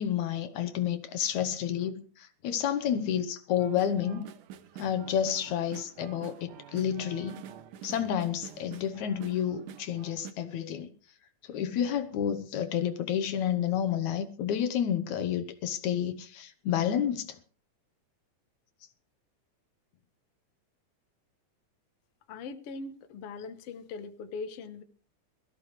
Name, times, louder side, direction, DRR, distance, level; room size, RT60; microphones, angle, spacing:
voice 1, 0.0-4.3 4.8-7.4 7.8-10.9 11.4-17.4, left 9 dB, 75° left, 2.3 m, -30 dB
sound 1, 3.6-10.3, right 9 dB, 90° right, 2.5 m, -47 dB
voice 2, 22.3-24.8, left 4 dB, 60° left, 1.9 m, -40 dB
22.0 x 15.0 x 3.3 m
omnidirectional pair, 3.5 m